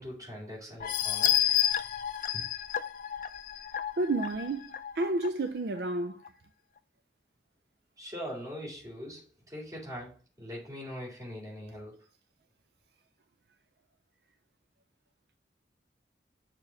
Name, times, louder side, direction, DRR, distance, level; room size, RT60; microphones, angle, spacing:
voice 1, 0.0-1.6 2.3-2.5 8.0-12.0, equal, 20° right, 3.5 m, -42 dB
sound 1, 0.8-5.3 5.8-5.9 6.2-6.3, left 11 dB, 45° left, 0.4 m, -30 dB
voice 2, 4.0-6.2, right 2 dB, 65° right, 0.4 m, -31 dB
6.7 x 2.9 x 5.8 m
head